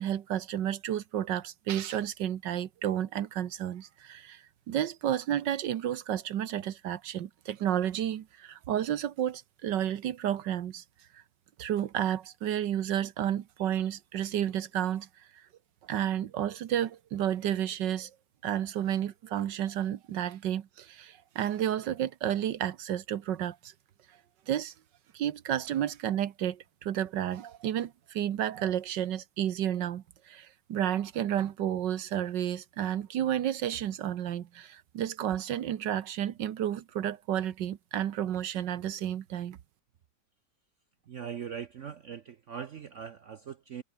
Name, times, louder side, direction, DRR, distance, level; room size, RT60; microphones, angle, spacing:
voice 1, 0.0-10.8 11.1-11.2 11.6-15.1 15.9-18.1 18.4-23.7 24.5-24.7 25.1-39.6, right 10 dB, 80° right, 1.7 m, -31 dB
voice 2, 41.1-43.8, right 8 dB, 55° right, 0.9 m, -41 dB
omnidirectional pair, 1.9 m